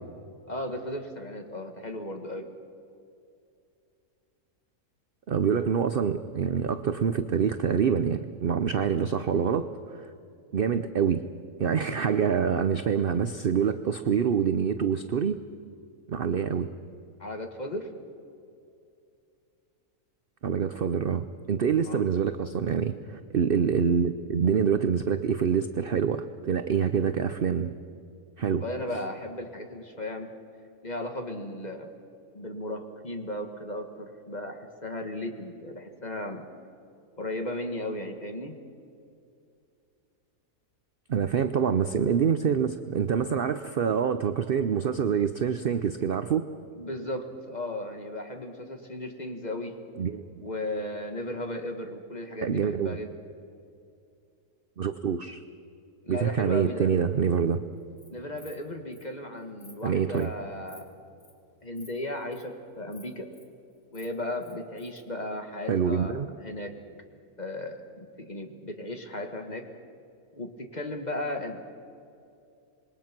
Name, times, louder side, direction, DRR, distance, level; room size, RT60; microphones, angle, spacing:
voice 1, 0.5-2.5 17.2-17.9 21.8-22.1 28.6-30.3 30.8-31.9 32.3-36.5 37.1-38.6 46.8-49.8 50.4-53.1 56.0-56.9 58.1-60.9 61.6-63.3 63.9-66.8 67.4-69.7 70.3-71.6, left 1 dB, 30° left, 5 dB, 1.6 m, -36 dB
voice 2, 5.3-9.7 9.9-10.1 10.5-11.2 11.6-15.4 16.1-16.7 20.4-27.7 28.4-28.6 41.1-46.4 50.0-50.2 52.4-53.0 54.8-55.4 56.1-57.6 59.8-60.3 65.7-66.3, right 7 dB, 50° right, 10 dB, 0.7 m, -26 dB
Insect, 57.8-58.1 58.4-58.6 58.9-59.0 59.4-59.7 60.1-60.3 60.7-60.9 61.2-61.4 61.7-61.9 62.2-62.4 62.9-63.4 63.8-65.0, left 2 dB, 60° left, 3.3 m, -53 dB
27.0 x 21.5 x 6.0 m, 2.5 s
omnidirectional pair, 1.7 m